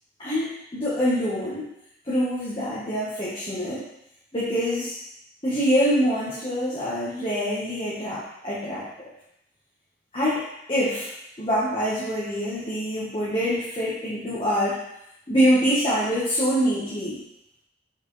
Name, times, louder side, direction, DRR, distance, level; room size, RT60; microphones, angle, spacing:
voice 1, 0.2-1.7 2.1-3.8 4.3-4.9 5.4-9.1 10.1-10.4 10.7-11.1 11.4-14.8 15.3-17.2, equal, 30° left, -10 dB, 1.4 m, -25 dB
6.0 x 4.8 x 3.3 m, 0.80 s
head